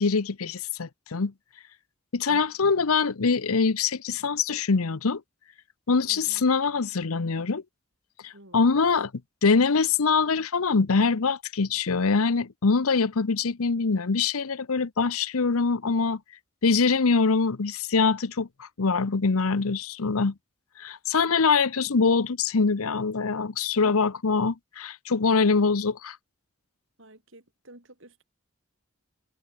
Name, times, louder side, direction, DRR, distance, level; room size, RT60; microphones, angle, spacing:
voice 1, 0.0-1.3 2.1-5.2 5.9-7.6 8.2-9.1 9.4-16.2 16.6-20.3 20.8-26.2, left 4 dB, 85° left, 0.8 m, -24 dB
voice 2, 6.0-6.4 8.3-8.9 27.0-28.2, right 1 dB, 60° right, 5.2 m, -51 dB
head